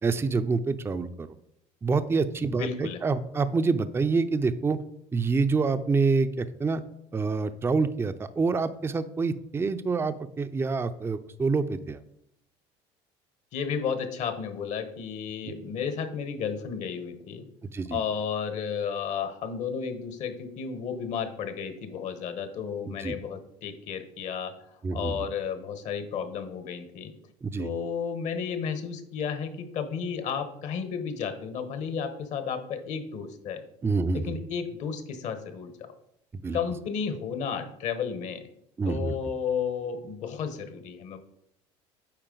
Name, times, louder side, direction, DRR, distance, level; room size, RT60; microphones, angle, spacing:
voice 1, 0.0-1.3 1.8-4.8 5.1-6.8 7.1-12.0 17.7-18.0 22.9-23.2 24.8-25.3 27.4-27.7 33.8-34.4 36.3-36.6 38.8-39.2, right 4 dB, 20° right, 12 dB, 0.5 m, -27 dB
voice 2, 2.6-3.0 13.5-17.5 17.9-24.5 24.9-27.1 27.6-33.6 34.1-35.9 36.5-38.5 38.8-41.2, left 6 dB, 60° left, 9 dB, 1.1 m, -33 dB
8.8 x 4.4 x 3.9 m, 0.74 s
supercardioid pair, 95°, 14 cm